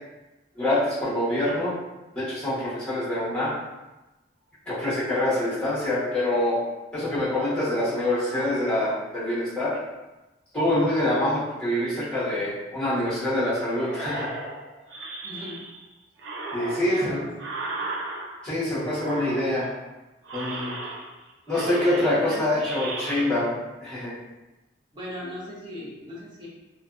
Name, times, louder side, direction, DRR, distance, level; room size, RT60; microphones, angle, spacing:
voice 1, 0.5-1.7 2.1-3.5 4.7-6.6 6.9-9.8 10.5-14.3 16.5-17.2 18.4-19.7 20.3-20.7 21.5-23.5 23.8-24.1, left 1 dB, 5° left, -12 dB, 1.0 m, -25 dB
sound 1, 13.8-15.8 16.2-18.6 18.9-19.8 20.2-21.2 21.5-23.2, right 2 dB, 85° right, 0.4 m, -35 dB
voice 2, 15.2-15.6 16.8-17.3 17.7-17.9 22.0-22.4 24.9-26.5, equal, 25° right, -6 dB, 0.6 m, -38 dB
2.6 x 2.2 x 2.4 m, 1.1 s
head